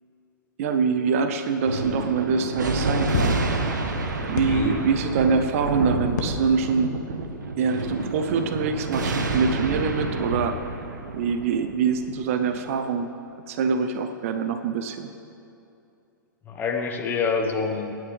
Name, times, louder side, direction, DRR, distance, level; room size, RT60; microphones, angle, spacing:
voice 1, 0.6-3.4 4.2-6.9 7.6-10.9 11.1-13.1 13.5-15.1, right 5 dB, 40° right, 8 dB, 0.8 m, -24 dB
Thunder, 1.6-12.5, right 3 dB, 60° right, 1.3 m, -29 dB
sound 1, 3.1-3.4 4.4-4.9 6.2-6.8 7.3-7.4, left 3 dB, 55° left, 1.8 m, -29 dB
voice 2, 4.4-4.8 16.5-17.9, left 5 dB, 15° left, 2 dB, 1.3 m, -27 dB
26.0 x 9.4 x 3.4 m, 2.7 s
figure-of-eight pair, 110°, 11 cm